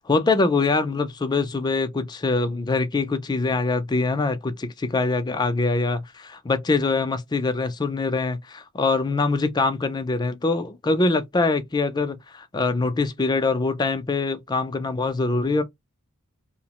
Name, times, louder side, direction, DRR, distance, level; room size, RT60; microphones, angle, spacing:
voice 1, 0.1-15.6, left 3 dB, 20° left, 0.4 m, -24 dB
2.7 x 2.0 x 2.9 m
head